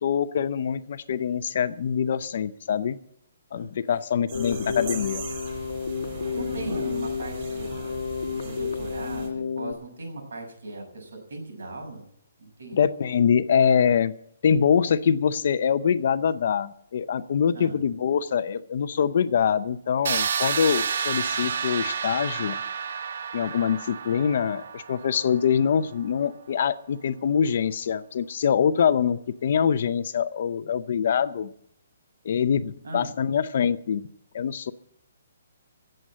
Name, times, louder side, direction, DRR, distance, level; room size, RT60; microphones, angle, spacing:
voice 1, 0.0-3.0 3.5-5.2 12.7-14.1 14.4-22.6 23.3-31.5 32.2-34.1 34.3-34.7, left 7 dB, 40° left, 13 dB, 0.6 m, -24 dB
Keyboard (musical), 4.3-9.7, left 5 dB, 75° left, 1.2 m, -31 dB
sound 1, 4.3-9.3, right 4 dB, 25° right, 6.3 m, -39 dB
voice 2, 6.3-7.8 8.4-12.0 12.4-12.8 17.5-17.8 32.8-33.1, right 2 dB, 80° right, 3 dB, 6.7 m, -38 dB
sound 2, 20.0-25.8, right 6 dB, 45° right, 0.6 m, -30 dB
16.5 x 7.8 x 7.6 m, 0.68 s
hypercardioid pair, 180°, 0 cm